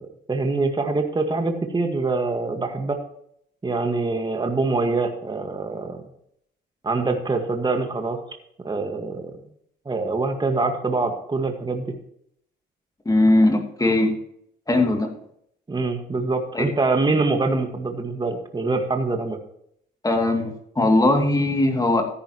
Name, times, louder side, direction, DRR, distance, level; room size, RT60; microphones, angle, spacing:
voice 1, 0.3-3.0 3.6-6.0 6.8-8.2 8.6-9.3 9.9-11.9 15.7-19.4, right 3 dB, 25° right, 4 dB, 1.8 m, -24 dB
voice 2, 13.0-14.2 14.7-15.1 16.5-16.7 20.0-22.0, left 2 dB, 20° left, 3 dB, 2.7 m, -19 dB
14.0 x 10.0 x 3.1 m, 0.70 s
cardioid pair, 80°, 19 cm